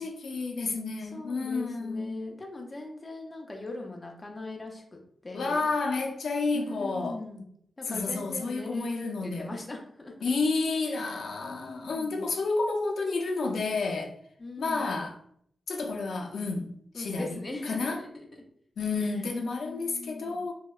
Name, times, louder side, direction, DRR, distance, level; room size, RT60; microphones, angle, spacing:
voice 1, 0.0-2.1 5.3-7.2 7.9-9.5 10.2-14.1 14.6-15.1 15.7-17.4 17.7-18.0 18.8-20.5, left 3 dB, 85° left, 0.4 m, -30 dB
voice 2, 1.0-5.7 6.5-7.5 7.8-10.3 10.9-11.2 11.5-12.3 14.4-15.0 16.9-18.4 19.0-19.3 19.5-20.4, left 2 dB, 25° left, 0.5 m, -41 dB
2.7 x 2.1 x 2.3 m
wide cardioid pair, 130°, 0 cm